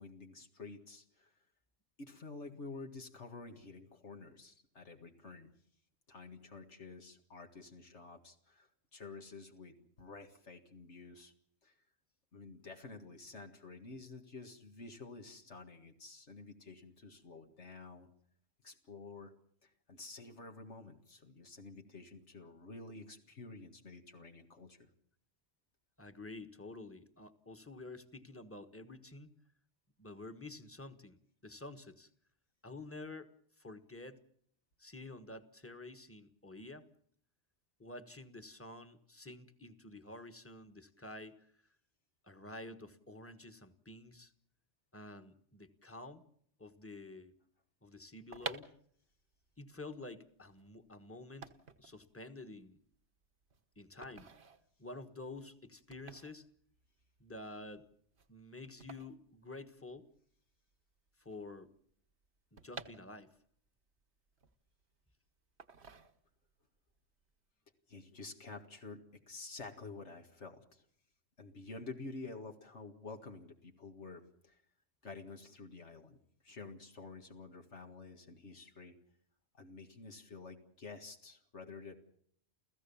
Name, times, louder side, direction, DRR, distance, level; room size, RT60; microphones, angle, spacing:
voice 1, 0.0-1.4 2.0-5.5 6.1-11.3 11.6-11.7 12.3-18.1 18.6-19.3 19.6-24.9 67.9-70.9 71.4-74.6 75.0-79.0 79.5-82.0, left 3 dB, 75° left, 4 dB, 2.2 m, -50 dB
voice 2, 26.0-29.4 30.0-32.1 32.6-34.2 34.8-36.9 37.8-41.5 42.2-44.3 44.9-46.3 46.6-47.4 47.8-48.7 49.6-52.8 53.8-54.3 54.8-56.5 57.2-57.9 58.3-60.1 61.2-61.7 62.5-63.3, left 2 dB, 10° left, 8 dB, 1.4 m, -49 dB
sound 1, 48.1-60.2 60.5-60.6 60.7-63.6 64.0-65.0 65.6-66.6 66.9-67.2, right 4 dB, 65° right, 1.5 m, -51 dB
30.0 x 15.5 x 7.1 m, 0.65 s
omnidirectional pair, 1.2 m